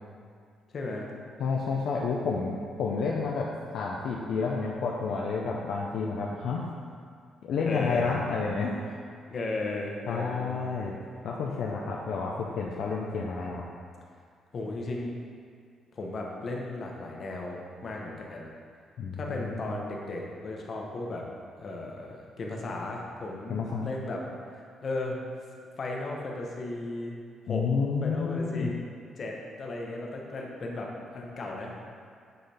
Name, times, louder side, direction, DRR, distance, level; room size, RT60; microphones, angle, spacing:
voice 1, 0.7-1.1 7.6-8.1 9.3-10.6 14.5-15.1 15.9-18.5 19.1-21.3 21.6-24.2 24.8-25.2 25.8-27.1 27.5-27.6 28.0-28.7 29.2-31.7, left 2 dB, 50° left, -1 dB, 1.0 m, -35 dB
voice 2, 1.4-3.5 3.7-6.7 7.4-8.8 10.1-11.0 11.2-13.6 19.0-19.7 23.5-24.0 27.5-28.7, left 4 dB, 75° left, -2 dB, 0.5 m, -30 dB
7.8 x 3.9 x 3.4 m, 2.2 s
cardioid pair, 90°, 0 cm